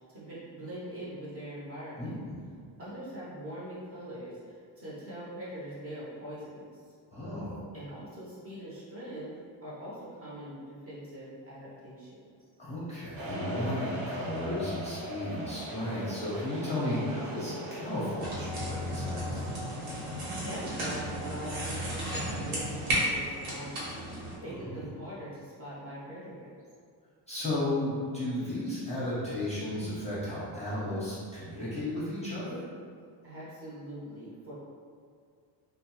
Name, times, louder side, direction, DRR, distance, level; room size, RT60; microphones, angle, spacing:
voice 1, 0.1-2.1 2.8-6.7 7.7-9.3 9.6-12.1 20.4-26.5 33.2-34.5, right 1 dB, 30° right, -9 dB, 0.7 m, -42 dB
voice 2, 2.0-2.4 7.1-7.6 12.6-19.4 24.6-24.9 27.3-32.6, left 1 dB, 15° left, -11 dB, 0.7 m, -34 dB
sound 1, 13.2-18.2, equal, 70° right, 0.7 m, -39 dB
sound 2, 18.2-24.4, equal, 85° right, 1.1 m, -34 dB
2.5 x 2.1 x 2.9 m, 2.1 s
cardioid pair, 145°, 47 cm